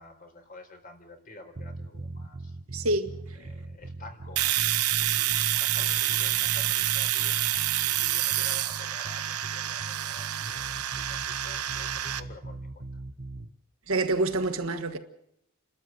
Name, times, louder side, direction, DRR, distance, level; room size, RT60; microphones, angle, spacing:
voice 1, 0.0-2.6 3.4-7.4 7.8-13.0, left 2 dB, 40° left, 4.2 m, -50 dB
sound 1, 1.6-13.5, right 2 dB, 45° right, 0.9 m, -40 dB
voice 2, 2.7-3.5 13.9-15.0, right 2 dB, 65° right, 1.7 m, -28 dB
Domestic sounds home sounds, 4.4-12.2, right 13 dB, 80° right, 1.0 m, -28 dB
30.0 x 13.0 x 7.9 m
head